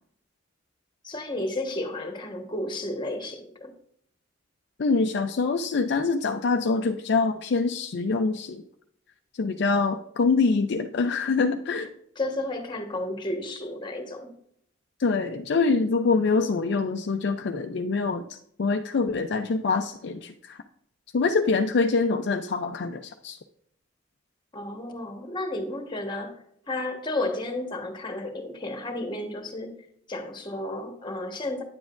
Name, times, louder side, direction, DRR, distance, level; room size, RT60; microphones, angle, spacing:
voice 1, 1.0-3.7 12.2-14.3 24.5-29.7 30.1-31.6, left 1 dB, 25° left, 5 dB, 1.2 m, -32 dB
voice 2, 4.8-8.6 9.4-11.9 15.0-20.6 21.1-23.4, left 4 dB, 60° left, 5 dB, 0.4 m, -25 dB
9.5 x 7.2 x 2.5 m, 0.68 s
head